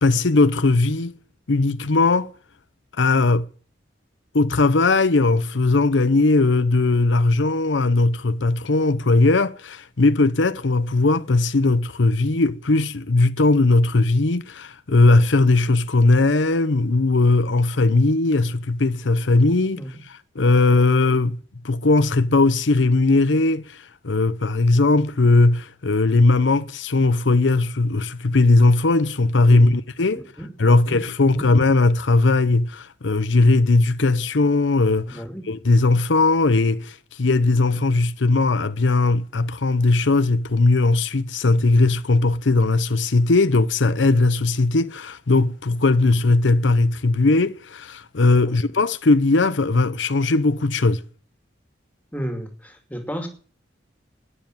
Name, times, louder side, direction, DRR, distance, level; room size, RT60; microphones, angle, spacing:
voice 1, 0.0-1.1 1.5-2.3 3.0-3.5 4.3-19.8 20.4-21.4 21.6-30.2 30.6-51.0, left 3 dB, 80° left, 0.8 m, -18 dB
voice 2, 30.1-31.0 31.3-31.5 35.1-35.5 48.4-48.6 52.1-53.3, equal, 10° left, 2.3 m, -33 dB
12.5 x 10.0 x 9.0 m
head